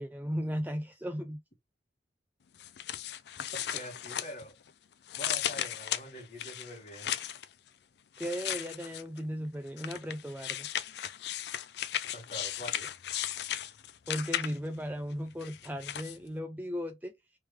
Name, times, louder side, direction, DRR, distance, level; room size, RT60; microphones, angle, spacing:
voice 1, 0.0-1.4 8.2-10.7 14.1-17.1, equal, 10° right, 0.3 m, -36 dB
sound 1, 2.6-4.7 5.1-7.5 8.2-9.2 9.8-14.8 15.4-16.2, left 11 dB, 60° left, 0.4 m, -36 dB
voice 2, 3.7-4.5 5.2-7.1 12.1-12.9, equal, 40° left, 1.4 m, -44 dB
3.2 x 3.2 x 3.0 m
head